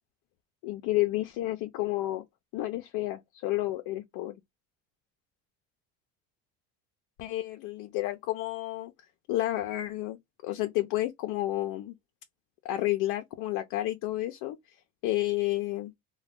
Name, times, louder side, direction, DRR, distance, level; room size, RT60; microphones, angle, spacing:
voice 1, 0.6-2.2 2.5-4.4 7.2-8.9 9.3-11.9 12.6-14.8 15.0-15.9, left 16 dB, 75° left, 0.5 m, -31 dB
2.3 x 2.2 x 3.5 m
cardioid pair, 105°, 33 cm